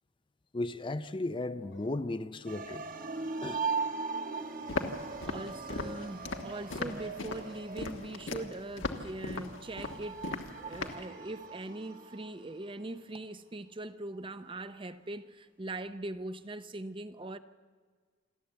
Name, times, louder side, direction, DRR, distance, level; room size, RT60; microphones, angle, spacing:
voice 1, 0.5-2.8 3.4-3.6, left 2 dB, 25° left, 0.5 m, -35 dB
sound 1, 1.7-2.7 4.0-4.9 7.9-9.0, left 1 dB, 70° left, 2.4 m, -54 dB
sound 2, 2.5-12.8, right 4 dB, 45° right, 1.5 m, -40 dB
Walk footsteps, 4.7-11.1, left 3 dB, 90° left, 1.4 m, -38 dB
voice 2, 5.2-17.4, right 2 dB, 25° right, 0.6 m, -41 dB
27.5 x 11.5 x 8.1 m
head